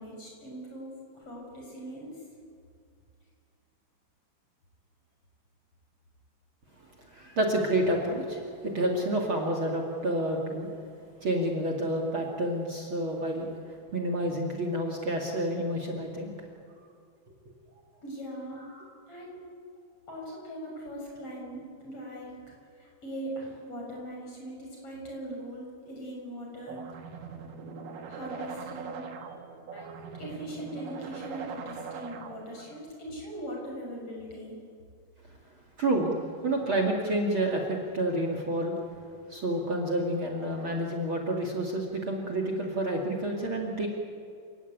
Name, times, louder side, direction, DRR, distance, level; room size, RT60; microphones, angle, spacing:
voice 1, 0.0-2.2 18.0-18.6 19.1-19.4 20.1-22.3 22.8-26.8 28.1-29.3 29.7-34.6, right 1 dB, 45° left, -1 dB, 7.8 m, -40 dB
voice 2, 7.1-10.7 11.2-16.3 18.7-18.8 35.8-36.2 36.4-38.8 39.3-43.9, right 1 dB, 40° right, 2 dB, 2.9 m, -29 dB
sound 1, 26.7-32.7, right 5 dB, 85° right, 3.4 m, -41 dB
29.0 x 17.5 x 9.4 m, 2.3 s
omnidirectional pair, 3.8 m